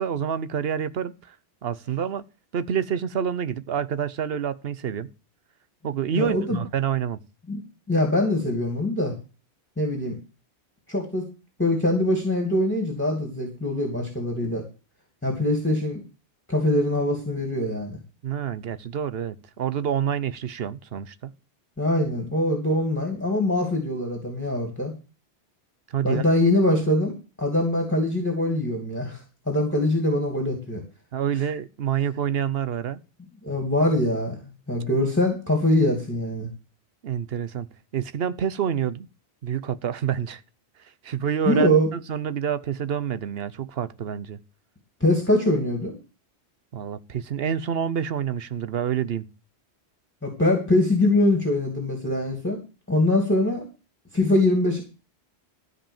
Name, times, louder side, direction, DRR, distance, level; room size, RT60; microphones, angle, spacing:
voice 1, 0.0-1.3 1.6-2.2 2.5-5.1 5.8-7.2 18.2-21.3 25.9-26.2 31.1-33.0 37.0-37.7 37.9-39.1 39.4-40.4 41.0-44.4 46.7-49.2, right 8 dB, 65° right, 1.0 m, -27 dB
voice 2, 6.1-6.6 7.5-7.6 7.9-9.1 9.8-10.2 10.9-11.3 11.6-14.6 15.2-16.0 16.5-18.0 21.8-24.9 26.0-27.1 27.4-30.8 33.4-36.5 41.5-41.9 45.0-46.0 50.2-52.6 52.9-53.6 54.1-54.8, left 1 dB, 10° left, 2.6 m, -23 dB
13.0 x 5.5 x 7.1 m
omnidirectional pair, 1.1 m